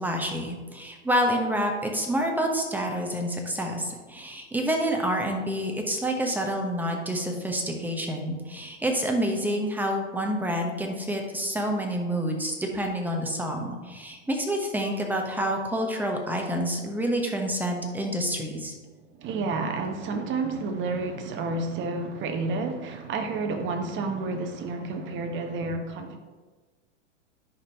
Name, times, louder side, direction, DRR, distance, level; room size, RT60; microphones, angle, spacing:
voice 1, 0.0-18.7, equal, 5° right, 2 dB, 1.0 m, -28 dB
voice 2, 19.2-26.2, right 3 dB, 30° right, 5 dB, 1.1 m, -30 dB
10.5 x 5.3 x 2.9 m, 1.3 s
hypercardioid pair, 115°, 38 cm